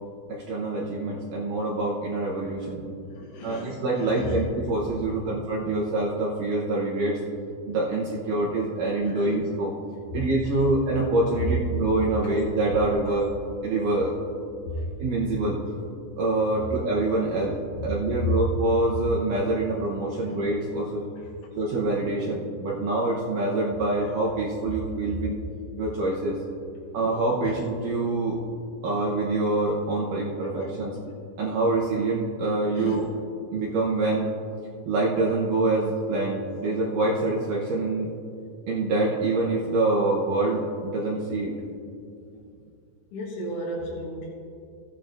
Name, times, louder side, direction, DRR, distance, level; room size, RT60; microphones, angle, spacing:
voice 1, 0.3-2.8 3.4-7.2 7.7-9.7 10.1-13.3 13.6-14.1 15.0-15.6 16.2-17.6 17.8-21.1 21.6-25.4 25.8-26.4 26.9-28.4 28.8-31.0 31.4-33.1 33.5-34.3 34.9-38.1 38.7-41.5, right 2 dB, 80° right, -4 dB, 1.8 m, -25 dB
voice 2, 3.1-4.4 5.1-5.2 9.1-9.4 14.7-14.9 16.5-16.7 18.2-18.3 20.3-20.4 21.2-21.3 27.4-27.5 30.9-31.0 32.7-33.0 43.1-44.3, left 2 dB, 90° left, -4 dB, 3.8 m, -34 dB
17.0 x 8.5 x 2.5 m, 2.5 s
omnidirectional pair, 5.2 m